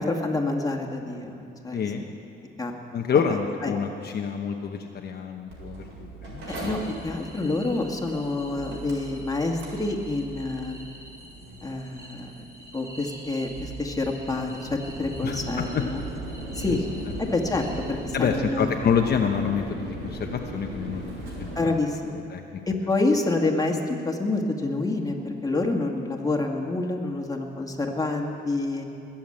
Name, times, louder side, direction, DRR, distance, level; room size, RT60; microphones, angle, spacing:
voice 1, 0.0-2.1 2.6-2.7 3.1-3.2 3.6-3.7 6.5-10.8 11.6-12.3 12.7-16.0 16.6-16.8 17.2-18.7 21.6-22.1 22.7-28.8, left 2 dB, 20° left, 2 dB, 2.0 m, -28 dB
voice 2, 1.7-2.0 2.9-6.8 15.2-15.4 15.7-15.8 16.7-16.8 18.1-21.8 22.3-22.4, left 7 dB, 55° left, 3 dB, 1.0 m, -27 dB
Mechanical fan, 5.5-21.6, right 2 dB, 85° right, 5.0 m, -38 dB
sound 1, 6.5-18.4, equal, 15° right, 3.4 m, -48 dB
20.5 x 7.4 x 8.8 m, 2.6 s
cardioid pair, 90°, 20 cm